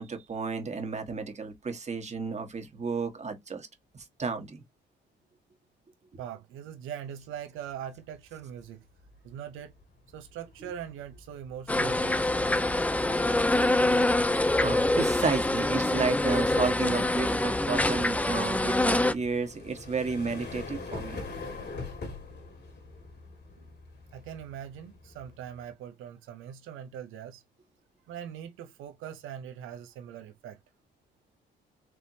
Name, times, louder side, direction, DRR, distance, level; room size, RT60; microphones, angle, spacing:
voice 1, 0.0-3.7 4.2-4.6 12.7-13.2 13.6-13.7 14.2-14.3 14.6-21.2, right 4 dB, 35° right, 1.4 m, -32 dB
voice 2, 6.2-8.9 9.2-9.7 10.1-12.4 23.6-23.7 24.1-27.4 28.1-30.6, right 9 dB, 90° right, 0.7 m, -41 dB
sound 1, 8.3-8.6 9.0-25.7, left 3 dB, 55° left, 2.4 m, -45 dB
sound 2, 11.7-19.1, left 2 dB, 5° left, 0.4 m, -25 dB
4.5 x 3.3 x 2.7 m
cardioid pair, 90°, 20 cm